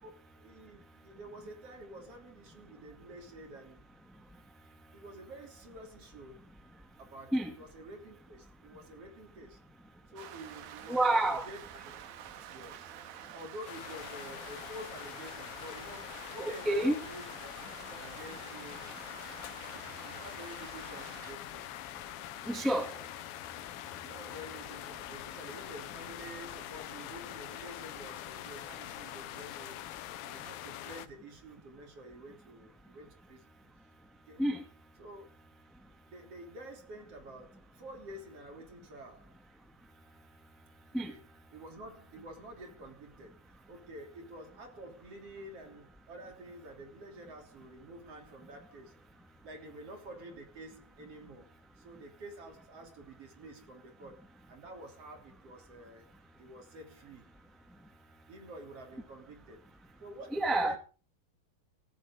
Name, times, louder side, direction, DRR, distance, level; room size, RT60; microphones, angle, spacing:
voice 1, 0.0-3.9 4.9-6.5 7.0-9.6 10.1-11.9 12.5-12.9 13.3-17.5 17.9-18.9 19.8-21.7 23.0-23.1 24.0-29.8 30.2-33.5 34.3-34.4 35.0-35.3 36.1-39.4 41.1-41.2 41.5-49.0 49.4-56.1 56.4-57.3 58.3-59.6 60.0-60.8, right 1 dB, 45° right, 4.0 m, -49 dB
Rain, 10.2-21.3, right 10 dB, 85° right, 3.2 m, -49 dB
voice 2, 10.9-11.5 16.6-17.0 22.5-22.9 34.4-34.6 40.9-41.1 60.3-60.8, right 1 dB, ahead, 1.5 m, -28 dB
sound 1, 13.7-31.1, left 13 dB, 90° left, 2.7 m, -44 dB
17.5 x 14.0 x 3.7 m
omnidirectional pair, 4.0 m